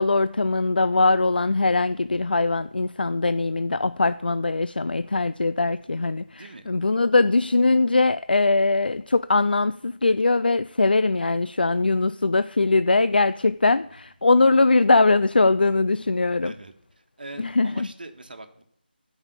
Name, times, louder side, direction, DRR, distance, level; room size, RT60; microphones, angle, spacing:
voice 1, 0.0-16.5 17.4-17.9, left 3 dB, 60° left, 0.4 m, -21 dB
voice 2, 6.2-6.7 16.4-16.7 17.2-18.6, right 2 dB, 55° right, 1.7 m, -42 dB
15.0 x 5.6 x 8.3 m
figure-of-eight pair, 160°, 6 cm